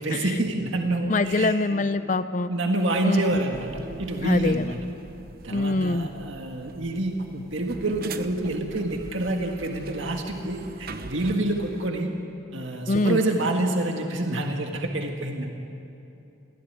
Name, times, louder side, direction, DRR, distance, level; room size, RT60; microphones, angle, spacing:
voice 1, 0.0-1.9 2.5-3.7 4.0-4.8 5.4-12.1 12.5-15.5, right 1 dB, 70° right, 2 dB, 1.7 m, -27 dB
voice 2, 1.1-2.5 3.0-3.4 4.2-4.6 5.5-6.1 12.9-13.2, left 2 dB, 40° left, 12 dB, 0.5 m, -24 dB
sound 1, 3.5-11.9, right 3 dB, 45° right, 0.9 m, -41 dB
23.5 x 17.0 x 9.5 m, 2.8 s
head